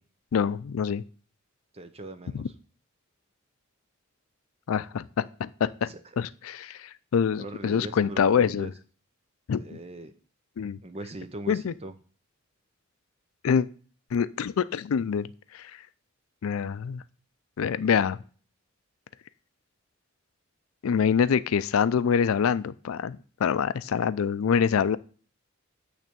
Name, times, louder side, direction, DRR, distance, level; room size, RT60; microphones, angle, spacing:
voice 1, 0.3-1.0 2.3-2.5 4.7-8.7 9.5-9.8 10.6-10.8 11.5-11.7 13.4-13.7 14.1-15.3 15.5-15.7 16.4-17.0 17.6-18.2 20.8-25.0, left 7 dB, 80° left, 15 dB, 0.4 m, -25 dB
voice 2, 1.7-2.4 5.9-6.0 7.4-8.7 9.6-10.1 10.8-11.9, right 1 dB, 30° right, 10 dB, 0.6 m, -40 dB
9.0 x 3.3 x 6.8 m, 0.42 s
head